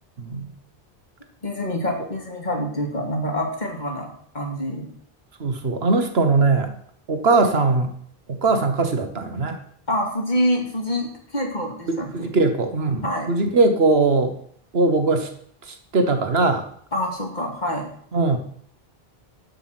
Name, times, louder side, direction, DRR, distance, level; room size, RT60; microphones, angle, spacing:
voice 1, 0.2-0.5 5.4-6.7 7.1-7.9 8.3-9.6 11.9-14.3 14.7-15.3 15.7-16.7 18.1-18.4, right 3 dB, 75° right, 7 dB, 1.5 m, -20 dB
voice 2, 1.4-4.9 9.9-12.3 13.0-13.3 16.9-17.9, equal, 45° left, 1 dB, 2.5 m, -26 dB
11.5 x 5.6 x 7.6 m, 0.62 s
omnidirectional pair, 1.0 m